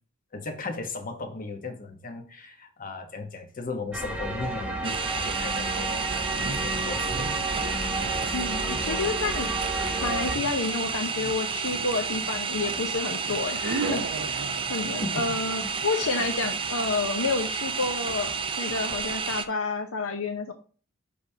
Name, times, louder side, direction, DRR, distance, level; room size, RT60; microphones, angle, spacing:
voice 1, 0.3-6.1 6.5-7.5 7.7-7.8 15.0-15.3 15.6-15.9, left 3 dB, 40° left, 1.0 m, -36 dB
sound 1, 3.9-10.3, right 1 dB, 5° right, 1.0 m, -31 dB
sound 2, 4.8-19.5, right 5 dB, 25° right, 0.5 m, -31 dB
sound 3, 5.7-18.4, right 3 dB, 65° right, 0.8 m, -40 dB
voice 2, 8.3-9.5 10.0-14.4 14.7-18.3 18.6-20.5, left 3 dB, 70° left, 0.8 m, -29 dB
10.0 x 3.5 x 2.8 m
head